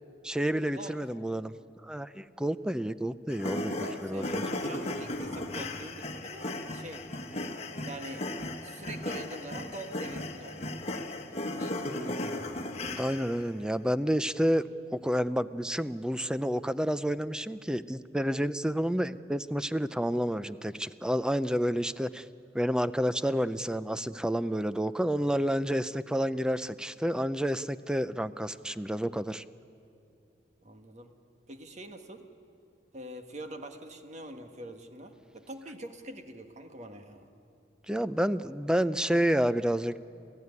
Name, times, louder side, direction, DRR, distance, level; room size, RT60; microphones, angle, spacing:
voice 1, 0.2-1.5 1.8-4.4 13.0-14.6 14.9-22.2 22.5-29.4 37.9-40.0, equal, 5° right, 14 dB, 0.5 m, -29 dB
sound 1, 3.3-13.5, left 1 dB, 35° left, 1.6 m, -36 dB
voice 2, 3.8-7.1 7.3-7.4 7.7-8.3 8.5-12.5 30.6-31.1 31.5-32.3 32.9-37.3, right 1 dB, 40° right, 6 dB, 1.6 m, -45 dB
28.0 x 15.5 x 9.7 m, 2.6 s
head